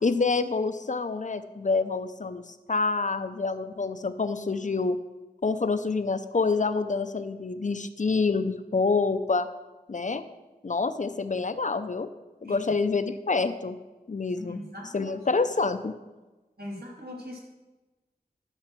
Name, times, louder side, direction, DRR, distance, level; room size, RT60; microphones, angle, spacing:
voice 1, 0.0-5.0 5.4-9.5 9.9-10.2 10.6-12.1 12.4-13.8 14.1-14.6 14.9-15.9, left 4 dB, 50° left, 11 dB, 0.6 m, -27 dB
voice 2, 14.4-15.1 16.6-17.4, left 1 dB, 70° right, -2 dB, 2.7 m, -40 dB
12.0 x 4.6 x 6.1 m, 1.1 s
wide cardioid pair, 65°, 16 cm